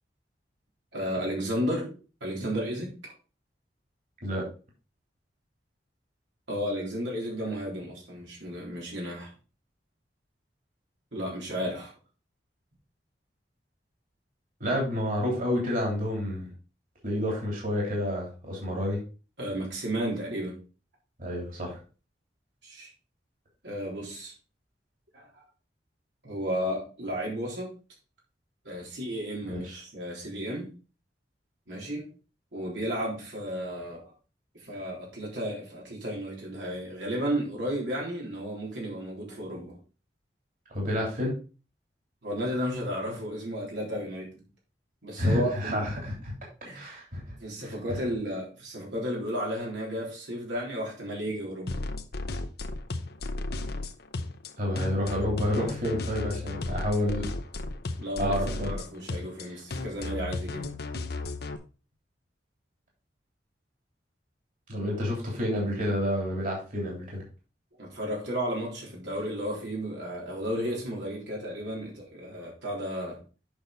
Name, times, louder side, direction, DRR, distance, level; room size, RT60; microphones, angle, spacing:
voice 1, 0.9-1.9 2.2-3.1 6.5-9.3 11.1-11.9 19.4-20.6 22.6-22.9 23.6-24.3 25.1-25.3 26.2-27.7 28.6-30.7 31.7-32.1 32.5-34.1 34.5-39.8 42.2-44.4 45.0-45.9 46.6-46.9 47.4-51.8 58.0-60.7 67.8-73.2, equal, 90° right, -3 dB, 3.8 m, -33 dB
voice 2, 14.6-16.5 17.0-19.0 21.2-21.8 29.5-29.8 40.7-41.3 45.2-46.3 46.7-47.4 47.6-48.0 54.6-57.3 58.2-58.7 59.4-59.5 64.7-67.2, left 1 dB, 50° right, -2 dB, 3.3 m, -29 dB
sound 1, 51.7-61.6, left 2 dB, 60° left, 0.8 m, -34 dB
8.7 x 5.8 x 4.0 m, 0.35 s
head